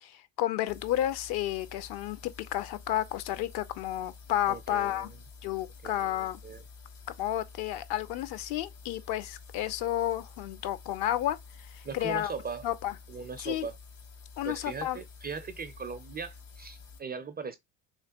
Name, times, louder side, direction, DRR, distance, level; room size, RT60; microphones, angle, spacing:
voice 1, 0.0-5.1 5.4-6.4 7.2-11.4 11.7-12.3 12.6-12.9 13.4-13.7 14.4-15.0, left 13 dB, 55° left, 0.7 m, -31 dB
sound 1, 0.7-17.0, left 4 dB, 70° left, 2.1 m, -50 dB
voice 2, 4.5-5.2 5.8-6.6 11.8-12.7 13.1-13.7 14.4-17.6, right 5 dB, 20° right, 0.4 m, -39 dB
3.2 x 3.2 x 2.9 m
hypercardioid pair, 65°, 48 cm